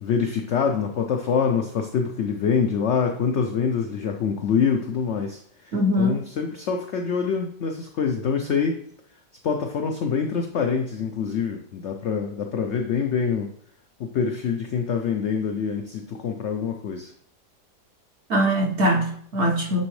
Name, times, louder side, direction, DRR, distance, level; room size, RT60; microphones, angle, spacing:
voice 1, 0.0-8.8 9.4-13.5 14.0-17.1, left 6 dB, 85° left, 3 dB, 0.6 m, -25 dB
voice 2, 5.7-6.2 18.3-19.8, equal, 60° right, 1 dB, 0.7 m, -22 dB
8.7 x 3.4 x 3.2 m, 0.64 s
omnidirectional pair, 1.8 m